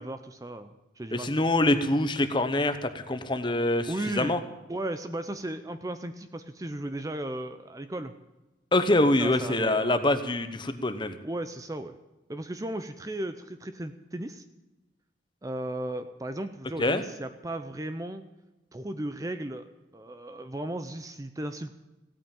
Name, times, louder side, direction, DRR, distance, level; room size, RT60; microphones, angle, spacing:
voice 1, 0.0-1.3 3.9-4.4 4.7-8.1 9.2-10.0 11.2-12.0 12.3-14.4 15.4-18.2 18.7-21.7, right 1 dB, 15° right, 9 dB, 0.6 m, -35 dB
voice 2, 1.1-4.4 8.7-11.1 16.8-17.0, left 1 dB, 25° left, 9 dB, 0.9 m, -25 dB
16.0 x 8.9 x 9.0 m, 1.0 s
head